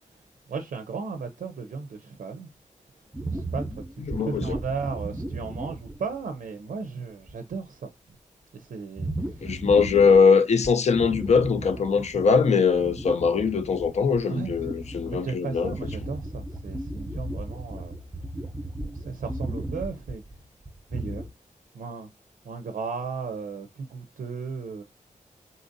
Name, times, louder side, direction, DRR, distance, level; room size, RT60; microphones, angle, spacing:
voice 1, 0.0-2.5 3.3-7.9 8.5-9.5 11.9-12.1 14.3-14.5 15.2-18.5 18.8-20.2 20.9-21.3 21.7-22.1 22.4-24.8, right 5 dB, 90° right, 0.4 m, -35 dB
sound 1, 3.1-6.2 6.7-6.8 7.2-7.5 9.0-10.3 10.6-12.4 12.7-21.3, right 1 dB, 10° right, 0.6 m, -35 dB
voice 2, 4.1-4.4 9.4-15.7, left 5 dB, 55° left, 0.4 m, -21 dB
3.8 x 2.5 x 2.5 m
wide cardioid pair, 125°, 13 cm